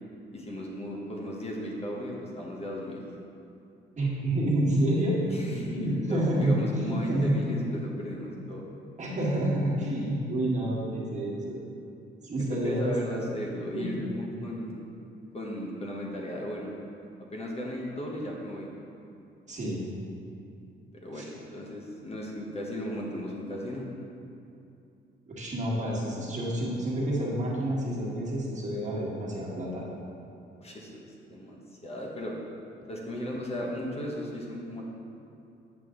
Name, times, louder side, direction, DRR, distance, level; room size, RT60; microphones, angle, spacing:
voice 1, 0.3-3.0 5.3-8.6 12.5-14.7 15.3-16.7 17.3-18.7 21.0-23.8 30.6-32.3 32.9-34.8, equal, 30° left, -2 dB, 1.2 m, -36 dB
voice 2, 4.0-5.2 5.6-7.4 9.0-11.6 12.2-12.9 13.7-14.4 19.5-19.8 21.1-21.3 25.3-29.8, right 1 dB, 35° right, -5 dB, 1.8 m, -29 dB
8.3 x 5.3 x 3.8 m, 2.6 s
cardioid pair, 90°, 20 cm